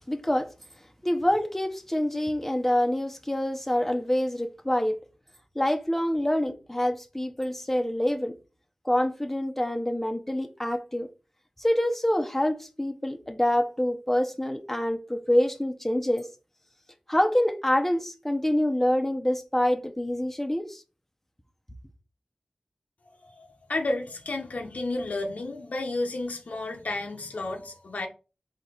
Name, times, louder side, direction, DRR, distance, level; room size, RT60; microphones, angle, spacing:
voice 1, 0.1-0.5 1.0-5.0 5.5-8.3 8.8-11.1 11.6-16.3 17.1-20.8, left 1 dB, 10° left, 0.7 m, -26 dB
voice 2, 23.4-28.1, left 2 dB, 80° left, 0.8 m, -32 dB
3.9 x 2.9 x 4.3 m
wide cardioid pair, 50°, 2 cm